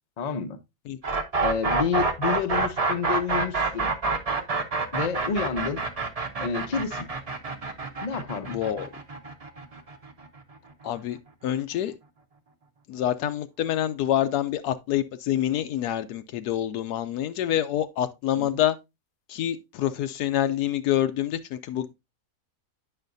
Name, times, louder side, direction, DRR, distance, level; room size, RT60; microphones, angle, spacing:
voice 1, 0.2-0.6 1.4-3.9 4.9-5.8 6.4-7.1 8.0-8.6 18.4-18.6, left 6 dB, 45° left, 0.5 m, -29 dB
sound 1, 1.0-10.9, right 3 dB, 35° right, 0.6 m, -27 dB
voice 2, 8.5-8.9 10.8-11.2 11.4-11.9 12.9-18.8 19.3-21.9, left 11 dB, 85° left, 1.1 m, -27 dB
8.9 x 5.9 x 2.6 m
omnidirectional pair, 1.7 m